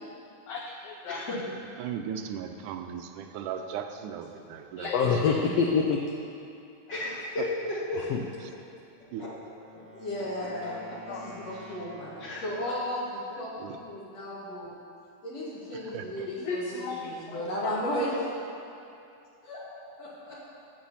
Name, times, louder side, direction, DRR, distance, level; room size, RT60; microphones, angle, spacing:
voice 1, 0.5-1.2 4.8-6.0 8.1-8.2 11.1-11.2 16.5-17.7, left 5 dB, 70° left, 0 dB, 1.6 m, -28 dB
voice 2, 1.0-1.6 6.9-8.1 9.2-9.3 10.3-10.7 11.1-11.2 11.5-11.7 12.2-12.4, left 2 dB, 40° left, -6 dB, 2.3 m, -34 dB
voice 3, 1.8-5.2 7.4-7.5 8.4-8.5 9.1-9.3 13.4-13.8 15.7-16.3, right 8 dB, 90° right, 6 dB, 2.2 m, -38 dB
Wind instrument woodwind instrument, 9.0-12.8, equal, 5° right, 1.4 m, -49 dB
voice 4, 9.9-12.1 12.4-14.7 15.2-18.2 19.4-19.6 20.0-20.4, equal, 55° left, -7 dB, 3.4 m, -35 dB
8.8 x 8.3 x 7.0 m, 2.6 s
omnidirectional pair, 3.5 m